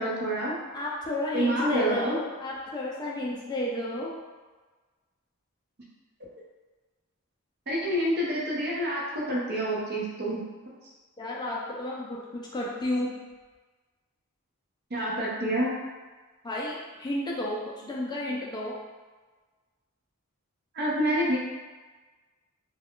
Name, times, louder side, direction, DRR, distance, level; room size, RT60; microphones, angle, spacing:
voice 1, 0.0-0.5 1.3-2.2 7.7-10.4 14.9-15.7 20.7-21.4, equal, 50° right, -4 dB, 0.7 m, -27 dB
voice 2, 0.7-4.1 11.2-13.2 16.4-18.8, left 1 dB, 20° left, -4 dB, 0.4 m, -32 dB
2.3 x 2.2 x 3.6 m, 1.3 s
head